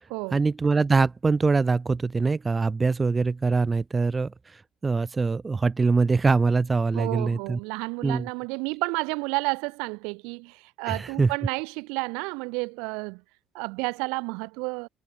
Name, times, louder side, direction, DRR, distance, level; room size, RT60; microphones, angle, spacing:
voice 1, 0.3-7.6 8.0-8.3 10.8-11.3, right 4 dB, 30° right, 1.7 m, -23 dB
voice 2, 6.9-13.2 13.5-14.9, right 30 dB, 75° right, 4.6 m, -31 dB
hypercardioid pair, 50°, 0 cm